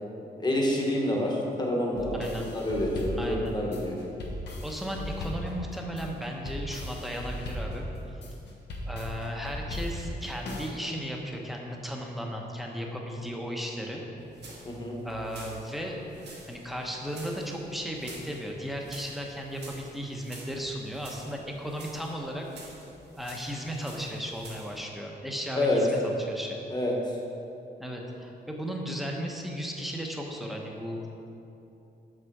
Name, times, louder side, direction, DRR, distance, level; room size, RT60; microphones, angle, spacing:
voice 1, 0.4-4.0 14.6-15.0 25.5-25.8 26.7-27.2, left 1 dB, 25° left, -2 dB, 1.3 m, -28 dB
sound 1, 2.0-10.7, left 1 dB, 70° left, 1.2 m, -37 dB
voice 2, 2.2-2.5 3.1-3.5 4.6-8.2 8.9-14.0 15.0-16.0 16.5-22.4 23.2-26.6 27.8-31.1, equal, ahead, 0 dB, 0.9 m, -35 dB
sound 2, 14.2-24.8, right 2 dB, 70° right, 1.5 m, -49 dB
6.5 x 6.3 x 4.6 m, 2.8 s
cardioid pair, 120°, 18 cm